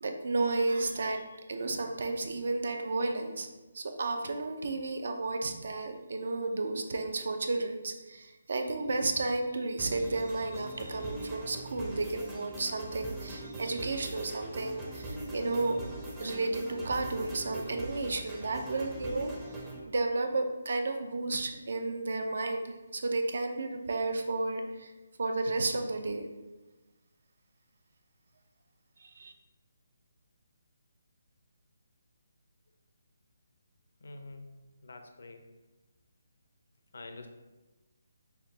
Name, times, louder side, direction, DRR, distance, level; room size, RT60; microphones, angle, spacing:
voice 1, 0.0-1.2 1.5-3.5 3.7-15.8 16.2-19.3 19.8-24.9 25.2-26.2 29.0-29.3, right 2 dB, 65° right, 5 dB, 0.5 m, -32 dB
sound 1, 9.8-19.8, right 1 dB, 10° right, 0.5 m, -41 dB
voice 2, 34.0-34.6 34.8-35.4 36.9-37.3, left 2 dB, 70° left, 6 dB, 0.5 m, -46 dB
5.6 x 2.2 x 3.9 m, 1.1 s
hypercardioid pair, 170°, 0 cm